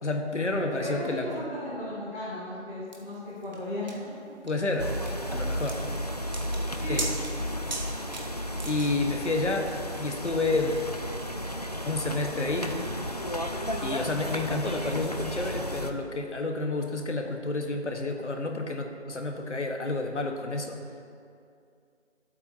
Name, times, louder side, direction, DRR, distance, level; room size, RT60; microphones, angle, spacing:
voice 1, 0.0-1.5 4.4-4.9 5.3-5.8 6.9-7.1 8.6-10.9 11.8-12.8 13.8-20.8, left 2 dB, 80° left, 3 dB, 1.7 m, -30 dB
voice 2, 0.8-4.1 6.8-7.0 13.6-14.0, equal, 15° left, -14 dB, 3.2 m, -36 dB
sound 1, 2.9-9.2, right 2 dB, 40° right, 1.4 m, -39 dB
sound 2, 4.8-15.9, equal, 35° left, 0.5 m, -33 dB
20.5 x 8.3 x 2.9 m, 2.4 s
figure-of-eight pair, 170°, 35 cm